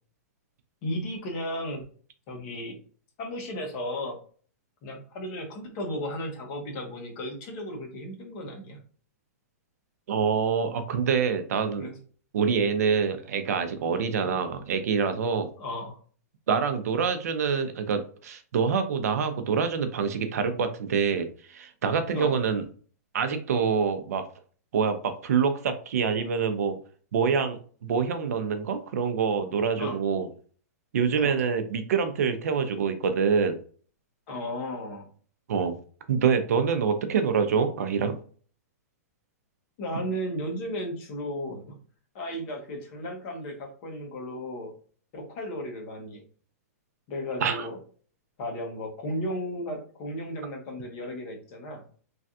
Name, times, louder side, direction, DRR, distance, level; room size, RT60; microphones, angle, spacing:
voice 1, 0.8-1.9 2.3-2.8 3.2-4.2 4.8-8.8 11.8-12.0 14.2-14.4 15.6-16.0 22.1-22.4 29.8-30.0 31.2-31.3 34.3-35.1 39.8-41.7 42.1-44.7 45.1-46.2 47.1-47.8 48.4-51.8, equal, 40° left, 1 dB, 1.0 m, -34 dB
voice 2, 10.1-11.9 12.3-15.5 16.5-22.6 23.1-24.2 24.7-26.8 27.1-30.3 30.9-33.6 35.5-35.8 36.1-38.2 47.4-47.7, right 6 dB, 75° right, 8 dB, 0.5 m, -26 dB
3.3 x 2.3 x 2.6 m, 0.43 s
hypercardioid pair, 150°, 9 cm